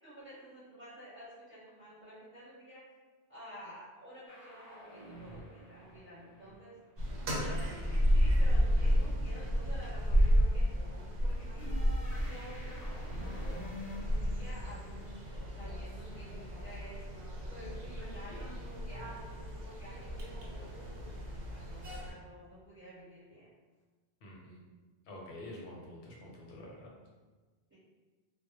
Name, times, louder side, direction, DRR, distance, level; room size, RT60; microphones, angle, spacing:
voice 1, 0.0-2.8 3.3-6.7 7.3-11.7 12.2-17.0 17.5-19.2 19.6-23.5 27.7-27.8, equal, 10° right, -11 dB, 0.8 m, -51 dB
sound 1, 4.3-7.1 11.6-16.3, left 1 dB, 45° left, 0.6 m, -49 dB
sound 2, 7.0-22.1, equal, 80° right, 0.9 m, -32 dB
voice 2, 24.2-24.6 25.1-26.9, left 1 dB, 80° left, -3 dB, 0.9 m, -47 dB
2.1 x 2.0 x 2.8 m, 1.3 s
omnidirectional pair, 1.1 m